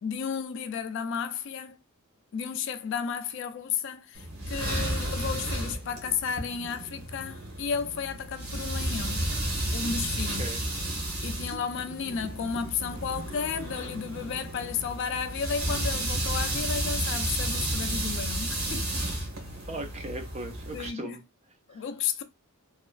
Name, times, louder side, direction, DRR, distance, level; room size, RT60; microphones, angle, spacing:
voice 1, 0.0-1.8 2.3-9.3 9.7-10.5 11.2-19.1 20.7-21.2 21.7-22.2, left 6 dB, 55° left, 0.3 m, -33 dB
sound 1, 4.2-20.9, right 1 dB, 80° right, 1.1 m, -32 dB
voice 2, 19.7-21.2 21.7-21.8, right 2 dB, 30° right, 0.5 m, -38 dB
2.9 x 2.3 x 2.3 m
head